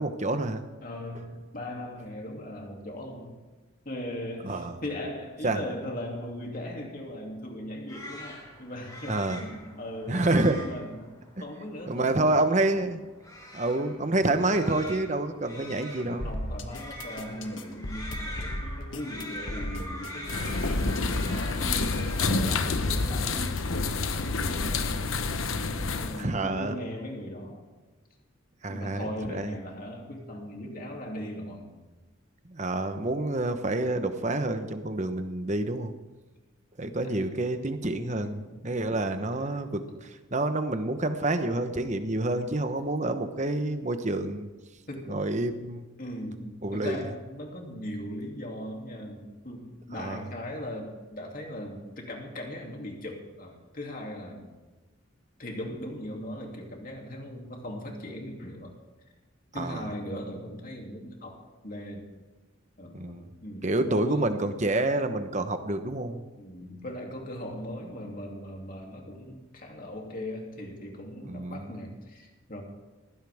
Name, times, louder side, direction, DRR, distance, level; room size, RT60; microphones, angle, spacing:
voice 1, 0.0-0.6 4.4-4.7 5.4-5.6 9.1-9.4 10.1-10.6 11.9-13.0 13.5-16.3 25.8-25.9 26.2-26.7 28.6-29.5 32.5-35.9 36.8-39.8 40.3-44.5 45.1-45.8 46.6-47.0 49.9-50.2 59.6-59.9 62.9-63.3 63.6-66.2 71.3-71.7, right 2 dB, 35° right, 8 dB, 1.0 m, -28 dB
voice 2, 0.8-3.4 3.8-10.3 10.6-12.4 16.0-25.3 26.0-27.6 28.7-31.7 37.0-37.2 38.2-38.7 39.2-39.9 42.4-42.5 44.9-45.3 46.0-54.5 55.4-58.7 59.5-62.1 62.8-64.3 66.4-72.6, left 1 dB, 45° left, 0 dB, 2.8 m, -39 dB
sound 1, 7.9-22.3, left 1 dB, 20° left, 3.6 m, -43 dB
sound 2, 16.2-24.9, left 1 dB, 65° left, 1.4 m, -36 dB
sound 3, 20.3-26.2, left 3 dB, 80° left, 1.1 m, -28 dB
19.5 x 16.0 x 3.6 m, 1.2 s
head